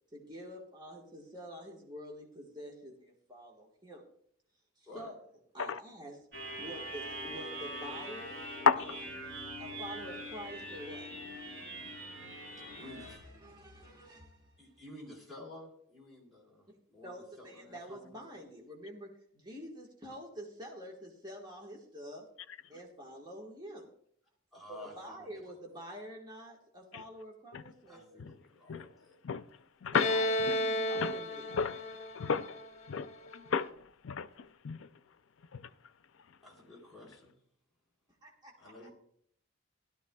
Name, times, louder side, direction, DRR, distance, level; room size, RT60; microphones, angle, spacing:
voice 1, 0.1-4.0 4.8-5.1 5.5-6.2 6.6-9.0 9.6-11.1 12.6-14.6 17.0-22.3 22.7-23.9 24.7-28.2 29.9-31.5 38.2-38.9, equal, 20° right, -2 dB, 1.4 m, -47 dB
sound 1, 6.3-13.2, right 1 dB, 55° right, 3.8 m, -43 dB
voice 2, 12.7-13.2 14.6-18.3 24.5-25.4 27.9-29.2 36.4-37.3 38.6-38.9, left 1 dB, ahead, -4 dB, 3.2 m, -52 dB
Bowed string instrument, 29.9-33.5, left 1 dB, 35° left, 1.2 m, -33 dB
voice 3, 32.1-32.6 32.9-33.7 34.0-34.9 35.5-35.6, left 6 dB, 70° left, 13 dB, 0.5 m, -32 dB
16.5 x 12.0 x 2.3 m, 0.66 s
head